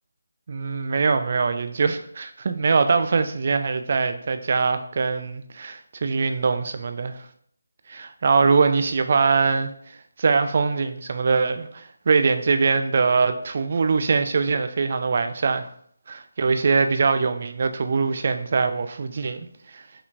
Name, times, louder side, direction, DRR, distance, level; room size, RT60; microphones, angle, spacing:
voice 1, 0.5-7.2 7.9-9.7 10.2-15.7 16.1-19.5 19.7-19.8, right 4 dB, 45° right, 8 dB, 0.5 m, -22 dB
5.9 x 3.1 x 2.6 m, 0.64 s
figure-of-eight pair, 160°, 0 cm